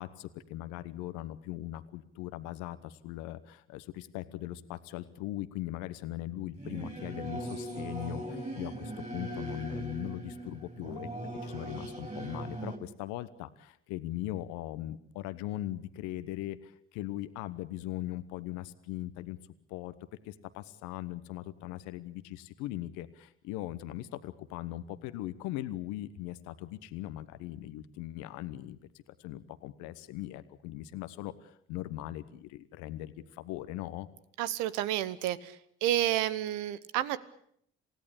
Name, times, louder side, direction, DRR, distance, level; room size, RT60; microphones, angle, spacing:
voice 1, 0.0-11.1 11.4-19.4 19.7-19.9 20.2-28.8 29.2-34.1, left 14 dB, 75° left, 13 dB, 1.1 m, -40 dB
Singing / Musical instrument, 6.5-12.8, right 1 dB, 20° right, 5.9 m, -39 dB
voice 2, 34.4-35.6 35.8-37.2, right 13 dB, 75° right, 16 dB, 1.1 m, -30 dB
28.0 x 16.5 x 8.5 m, 0.68 s
hypercardioid pair, 45°, 30 cm